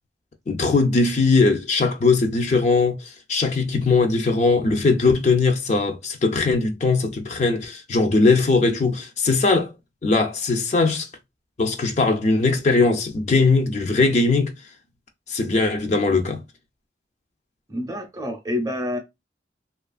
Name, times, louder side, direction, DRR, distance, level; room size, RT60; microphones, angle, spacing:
voice 1, 0.5-9.7 10.0-11.1 11.6-14.5 15.3-16.4, left 3 dB, 40° left, 0.4 m, -20 dB
voice 2, 17.7-19.0, left 1 dB, 20° right, 0.6 m, -27 dB
2.8 x 2.4 x 2.3 m
head